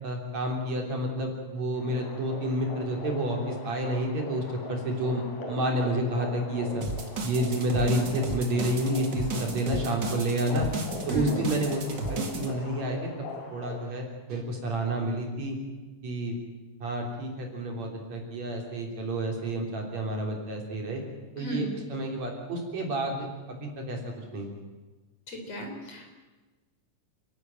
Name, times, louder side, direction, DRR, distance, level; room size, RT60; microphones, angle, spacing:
voice 1, 0.0-6.8 7.2-10.7 11.1-13.1 13.5-15.6 16.0-16.3 16.8-21.0 21.4-24.0 24.3-24.5, right 1 dB, 55° right, 1 dB, 4.5 m, -30 dB
sound 1, 1.7-13.9, left 1 dB, 70° left, 4.9 m, -41 dB
sound 2, 6.8-12.5, right 3 dB, 35° right, 2.3 m, -34 dB
voice 2, 11.1-11.4 21.4-21.7 25.3-26.1, right 2 dB, 50° left, 2 dB, 5.0 m, -34 dB
29.0 x 12.5 x 9.1 m, 1.2 s
omnidirectional pair, 3.8 m